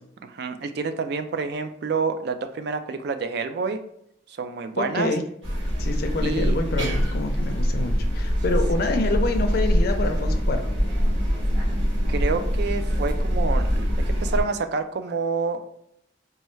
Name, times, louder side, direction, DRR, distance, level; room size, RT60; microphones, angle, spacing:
voice 1, 0.2-3.8 4.3-5.1 6.2-6.5 12.1-15.6, right 4 dB, 55° right, 8 dB, 0.3 m, -28 dB
voice 2, 4.8-5.2 5.8-10.7, left 2 dB, 50° left, 6 dB, 0.4 m, -27 dB
sound 1, 5.4-14.4, equal, 80° right, 1.5 m, -23 dB
4.2 x 2.3 x 3.1 m, 0.74 s
head